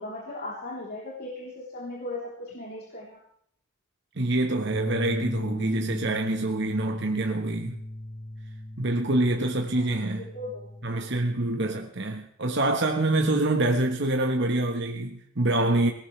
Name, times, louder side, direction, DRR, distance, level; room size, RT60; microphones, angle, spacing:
voice 1, 0.0-3.2 9.7-10.7, left 2 dB, 50° left, 3.7 m, -38 dB
voice 2, 4.1-7.8 8.8-10.3 10.8-15.9, right 2 dB, 60° right, 1.4 m, -26 dB
sound 1, 4.7-11.4, left 1 dB, 15° left, 0.8 m, -36 dB
19.0 x 18.5 x 3.4 m
head